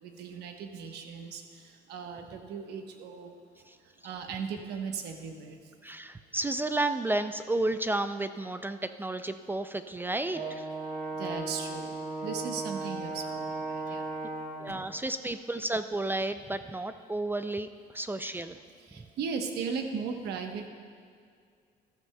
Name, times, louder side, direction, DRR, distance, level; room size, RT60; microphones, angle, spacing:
voice 1, 0.0-3.4 4.0-5.6 11.2-12.0 12.2-14.1 14.7-14.9 17.4-17.5 18.8-20.7, right 6 dB, 75° right, 5 dB, 1.1 m, -37 dB
voice 2, 5.8-10.7 13.9-14.0 14.6-17.7 17.9-18.6, right 2 dB, 10° right, 10 dB, 0.3 m, -32 dB
Brass instrument, 10.3-14.7, right 2 dB, 50° right, 1.8 m, -36 dB
14.5 x 12.5 x 2.3 m, 2.1 s
cardioid pair, 110°, 17 cm